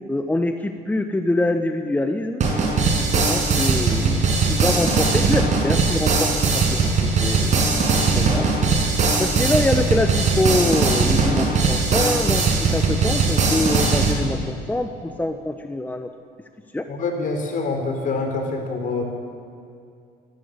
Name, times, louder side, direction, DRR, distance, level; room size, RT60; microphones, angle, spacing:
voice 1, 0.1-2.5 3.0-7.6 8.1-8.5 9.2-16.1 16.7-16.9, left 1 dB, 10° left, 7 dB, 1.0 m, -25 dB
sound 1, 2.4-14.1, right 4 dB, 45° right, 5.8 m, -20 dB
voice 2, 16.9-19.0, left 3 dB, 50° left, 4 dB, 4.4 m, -25 dB
25.5 x 12.5 x 8.3 m, 2.4 s
cardioid pair, 110°, 17 cm